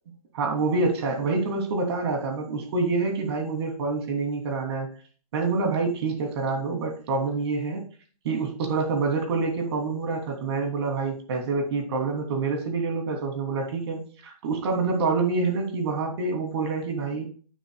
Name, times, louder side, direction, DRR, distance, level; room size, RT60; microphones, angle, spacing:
voice 1, 0.3-4.9 5.3-7.8 8.2-17.3, right 4 dB, 45° right, 2 dB, 2.9 m, -27 dB
10.0 x 6.9 x 2.3 m, 0.41 s
hypercardioid pair, 140°, 20 cm